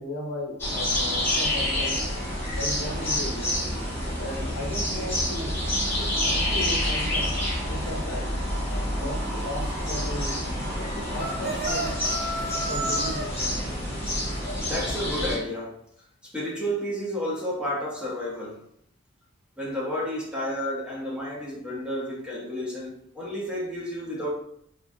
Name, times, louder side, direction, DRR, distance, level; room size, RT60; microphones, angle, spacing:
voice 1, 0.0-2.0 2.5-3.5 4.2-5.6 6.0-7.3 7.7-8.4 8.9-10.4 10.8-12.0 12.5-13.7, left 1 dB, 65° left, 0.8 m, -36 dB
sound 1, 0.6-15.4, left 1 dB, 10° left, 1.0 m, -28 dB
sound 2, 11.2-13.3, right 1 dB, 45° right, 0.6 m, -31 dB
voice 2, 14.6-15.8 16.2-18.6 19.6-24.3, equal, 5° right, 0.6 m, -31 dB
3.0 x 2.4 x 2.5 m
head